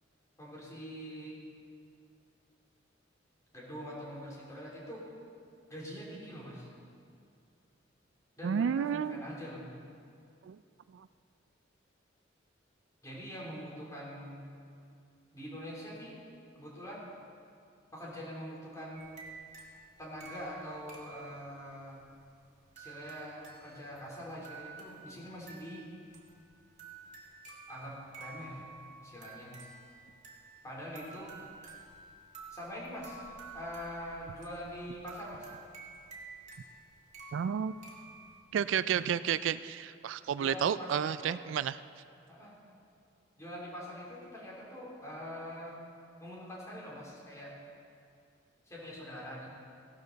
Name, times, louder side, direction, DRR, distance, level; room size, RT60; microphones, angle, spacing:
voice 1, 0.4-1.4 3.5-5.1 5.7-6.7 8.4-9.7 13.0-14.5 15.3-16.1 16.5-17.0 17.9-19.1 20.0-22.0 22.7-25.9 27.7-29.5 30.6-31.3 32.5-33.2 33.5-35.5 40.4-41.3 42.3-42.5 43.4-45.8 46.2-47.5 48.6-49.5, equal, 15° left, -5 dB, 3.4 m, -44 dB
voice 2, 8.4-9.2 10.4-10.6 10.9-11.1 37.3-37.7 38.5-41.8, right 8 dB, 75° right, 14 dB, 0.3 m, -31 dB
sound 1, 18.9-38.4, right 3 dB, 40° right, 1.9 m, -51 dB
15.5 x 12.0 x 4.0 m, 2.4 s
head